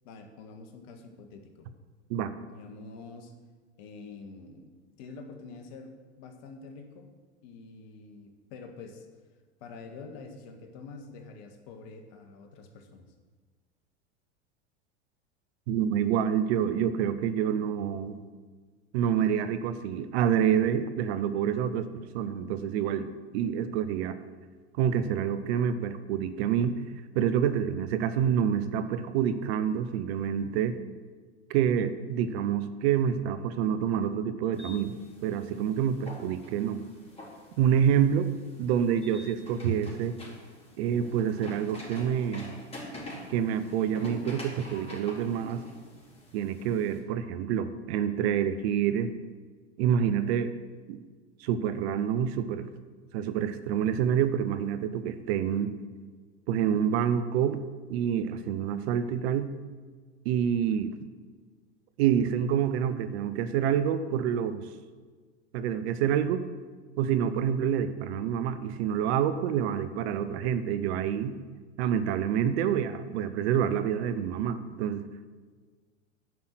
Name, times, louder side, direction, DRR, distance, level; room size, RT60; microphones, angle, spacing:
voice 1, 0.0-1.7 2.5-3.3 3.8-4.7 5.0-7.1 7.4-9.1 9.6-13.1, left 4 dB, 55° left, 5 dB, 1.8 m, -46 dB
voice 2, 15.7-18.2 18.9-21.9 22.1-23.1 23.3-24.2 24.8-26.8 27.1-30.8 31.5-35.0 35.2-36.8 37.6-38.3 38.6-40.2 40.8-42.5 43.3-45.6 46.3-49.1 49.8-50.5 50.9-51.0 51.4-52.7 53.1-55.8 56.5-57.6 57.9-59.5 60.2-60.9 62.0-64.6 65.5-66.4 67.0-71.4 71.8-75.0, right 8 dB, 65° right, 11 dB, 0.9 m, -27 dB
sound 1, 34.5-47.0, left 1 dB, 15° left, 3.8 m, -46 dB
10.5 x 5.7 x 7.7 m, 1.5 s
hypercardioid pair, 90°, 34 cm